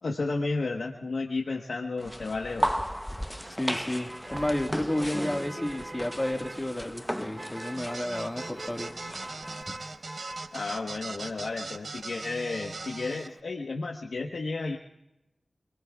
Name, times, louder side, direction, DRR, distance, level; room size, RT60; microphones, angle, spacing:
voice 1, 0.0-2.7 10.5-14.8, left 3 dB, 80° left, 1 dB, 1.2 m, -32 dB
sound 1, 2.0-9.6, equal, ahead, 0.8 m, -35 dB
Motor vehicle (road), 2.9-13.4, right 1 dB, 35° right, 1.3 m, -45 dB
voice 2, 3.6-8.9, left 1 dB, 20° left, 4 dB, 1.7 m, -31 dB
sound 2, 7.8-13.3, right 3 dB, 70° right, 0.8 m, -40 dB
27.5 x 20.5 x 2.4 m, 0.91 s
cardioid pair, 40°, 0 cm